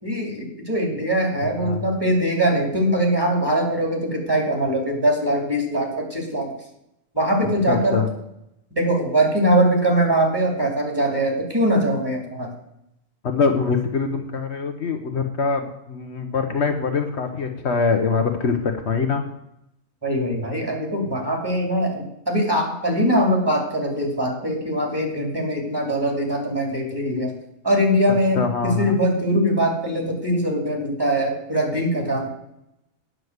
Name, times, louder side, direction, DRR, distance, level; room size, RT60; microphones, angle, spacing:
voice 1, 0.0-6.5 7.1-8.0 8.8-12.5 20.0-27.3 27.6-32.3, right 1 dB, 20° right, 1 dB, 2.6 m, -22 dB
voice 2, 7.7-8.1 13.2-19.2 28.4-29.0, left 5 dB, 60° left, 5 dB, 1.1 m, -23 dB
9.3 x 6.1 x 7.9 m, 0.81 s
omnidirectional pair, 1.3 m